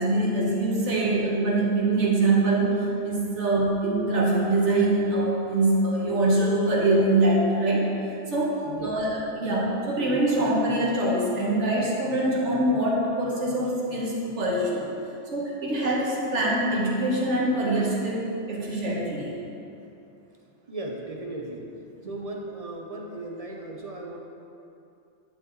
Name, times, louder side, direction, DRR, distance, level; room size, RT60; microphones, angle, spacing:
voice 1, 0.0-7.9 8.3-14.9 15.3-19.3, right 2 dB, 70° right, -4 dB, 1.8 m, -24 dB
voice 2, 8.6-9.0 20.7-21.7 22.0-24.2, right 2 dB, 35° right, 0 dB, 0.7 m, -36 dB
10.5 x 7.1 x 3.2 m, 2.7 s
omnidirectional pair, 1.3 m